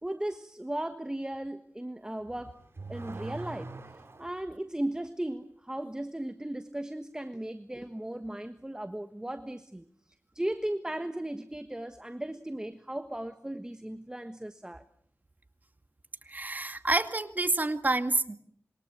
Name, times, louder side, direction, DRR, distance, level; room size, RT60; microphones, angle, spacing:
voice 1, 0.0-2.6 2.9-3.7 4.2-9.8 10.3-14.8, right 1 dB, 15° right, 1.4 m, -36 dB
Car / Accelerating revving vroom, 2.2-4.5, right 3 dB, 55° right, 4.6 m, -42 dB
voice 2, 16.3-18.4, right 2 dB, 35° right, 2.1 m, -28 dB
27.0 x 23.5 x 7.9 m
wide cardioid pair, 90°, 5 cm